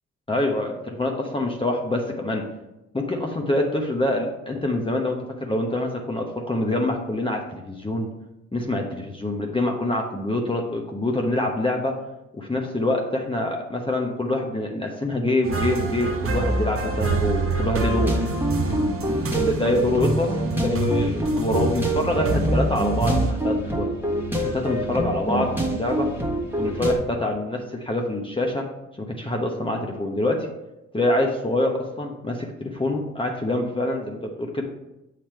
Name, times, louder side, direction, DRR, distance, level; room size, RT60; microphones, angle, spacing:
voice 1, 0.3-2.4 2.9-8.1 8.5-11.9 12.4-18.1 19.1-20.3 20.6-23.9 24.4-26.1 26.6-28.6 29.1-30.5 30.9-34.7, left 1 dB, 15° left, 0 dB, 1.0 m, -25 dB
sound 1, 15.4-23.3, right 3 dB, 45° right, 0.9 m, -26 dB
sound 2, 18.0-27.0, right 1 dB, 5° right, 1.4 m, -26 dB
7.2 x 3.4 x 4.5 m, 0.93 s
supercardioid pair, 45°, 32 cm